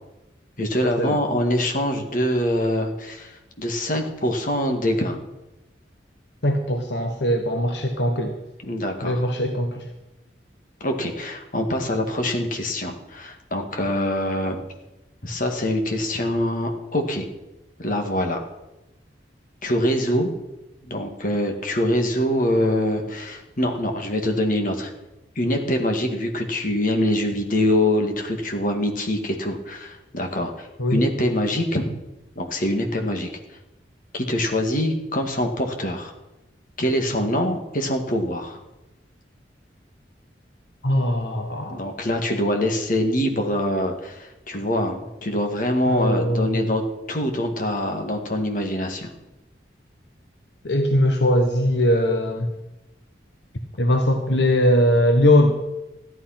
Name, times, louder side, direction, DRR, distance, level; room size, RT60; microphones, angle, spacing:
voice 1, 0.6-5.2 8.6-9.2 10.8-14.6 15.2-17.2 17.8-18.4 19.6-20.3 20.8-24.9 25.4-31.9 32.4-33.3 34.1-36.1 36.8-38.6 41.7-49.1, left 1 dB, 45° left, 4 dB, 2.0 m, -24 dB
voice 2, 6.4-8.3 9.0-9.9 30.8-31.0 40.8-41.8 45.9-46.7 50.6-52.5 53.8-55.5, left 1 dB, 70° left, 4 dB, 1.4 m, -20 dB
14.5 x 11.0 x 5.8 m, 0.98 s
head